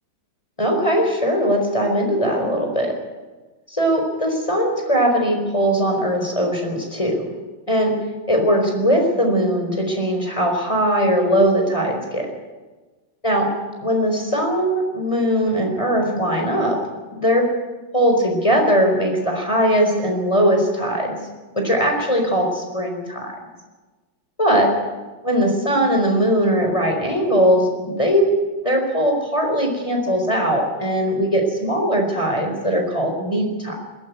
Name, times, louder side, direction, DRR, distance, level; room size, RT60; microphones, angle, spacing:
voice 1, 0.6-2.9 3.7-7.2 7.7-7.9 8.3-12.3 13.2-13.5 13.8-16.8 17.1-17.5 17.9-21.2 21.5-23.3 24.4-24.7 25.2-28.3 28.6-33.8, equal, 15° left, 2 dB, 4.5 m, -20 dB
21.5 x 16.0 x 9.5 m, 1.3 s
omnidirectional pair, 2.1 m